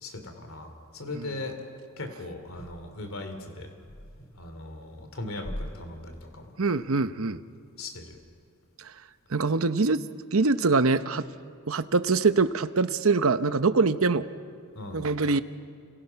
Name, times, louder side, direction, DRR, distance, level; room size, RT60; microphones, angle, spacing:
voice 1, 0.0-1.5 2.0-3.7 4.2-6.5 7.8-8.2 14.7-15.1, left 2 dB, 70° left, 6 dB, 2.9 m, -38 dB
voice 2, 6.6-7.4 9.3-10.0 10.3-11.2 11.7-14.3 14.9-15.4, right 4 dB, 75° right, 11 dB, 0.9 m, -24 dB
30.0 x 27.5 x 5.8 m, 2.3 s
head